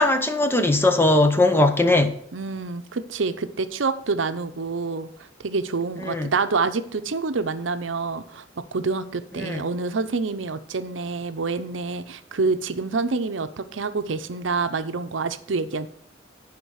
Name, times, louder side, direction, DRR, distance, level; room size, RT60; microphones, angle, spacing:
voice 1, 0.0-2.1 6.0-6.3 9.4-9.6, left 2 dB, 10° left, 7 dB, 0.7 m, -19 dB
voice 2, 2.3-5.1 5.4-8.4 8.7-15.9, right 4 dB, 75° right, 10 dB, 0.7 m, -27 dB
11.0 x 5.1 x 6.4 m, 0.70 s
head